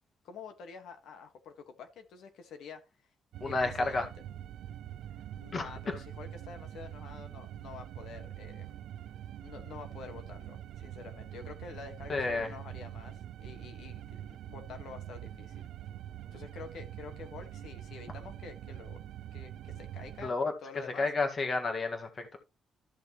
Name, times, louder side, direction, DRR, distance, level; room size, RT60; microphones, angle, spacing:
voice 1, 0.2-2.8 3.4-4.1 5.4-8.8 9.4-15.7 16.3-19.0 19.3-20.3 20.6-21.1, left 5 dB, 70° left, 1.6 m, -48 dB
sound 1, 3.3-20.3, right 11 dB, 80° right, 0.6 m, -44 dB
voice 2, 3.4-4.1 5.5-6.0 12.1-12.5 20.2-20.5 21.0-22.4, left 3 dB, 30° left, 1.8 m, -31 dB
13.5 x 6.4 x 3.1 m
cardioid pair, 170°, 0 cm